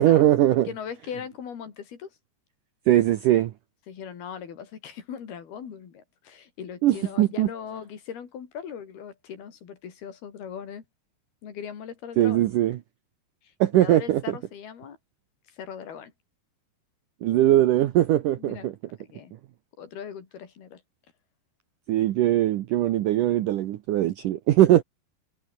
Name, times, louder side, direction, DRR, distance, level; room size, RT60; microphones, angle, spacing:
voice 1, 0.0-0.7 2.9-3.5 6.8-7.5 12.2-12.8 13.6-14.2 17.2-18.7 21.9-24.8, right 13 dB, 75° right, 2.0 m, -20 dB
voice 2, 0.5-2.1 3.9-10.8 11.4-12.4 13.4-15.0 15.5-16.1 18.4-18.7 19.0-19.3 19.8-20.8, left 7 dB, 65° left, 5.0 m, -39 dB
omnidirectional pair, 4.9 m